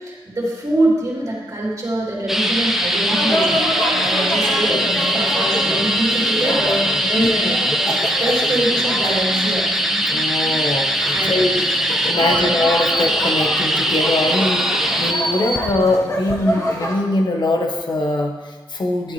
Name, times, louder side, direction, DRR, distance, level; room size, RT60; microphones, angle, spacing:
voice 1, 0.0-9.7 11.1-11.4 12.3-12.4, right 1 dB, 40° right, -4 dB, 3.2 m, -24 dB
sound 1, 2.3-15.7 16.3-16.4, right 1 dB, 5° right, 0.8 m, -21 dB
sound 2, 3.1-16.9, equal, 35° left, 1.5 m, -27 dB
voice 2, 7.0-7.6 10.1-11.5 12.0-19.1, left 2 dB, 60° left, 3 dB, 1.2 m, -22 dB
12.0 x 11.0 x 3.3 m, 1.4 s
wide cardioid pair, 140°, 9 cm